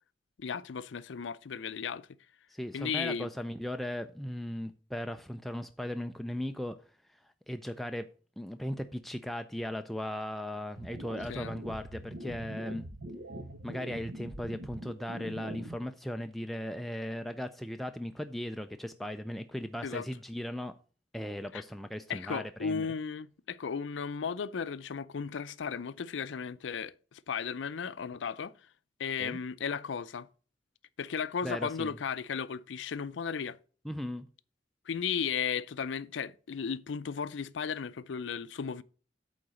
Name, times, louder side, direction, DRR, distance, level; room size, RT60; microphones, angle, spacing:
voice 1, 0.4-2.1 2.7-3.3 11.3-11.5 19.8-20.1 21.5-21.6 22.1-28.5 29.0-30.3 31.0-33.6 34.9-38.8, left 6 dB, 75° left, 0.5 m, -35 dB
voice 2, 2.5-6.8 7.2-8.1 8.4-12.9 13.6-20.7 21.1-22.9 29.2-29.4 31.4-32.0 33.8-34.3, left 1 dB, ahead, 0.3 m, -37 dB
sound 1, 10.8-15.8, right 1 dB, 55° right, 1.0 m, -43 dB
8.7 x 3.9 x 6.3 m
head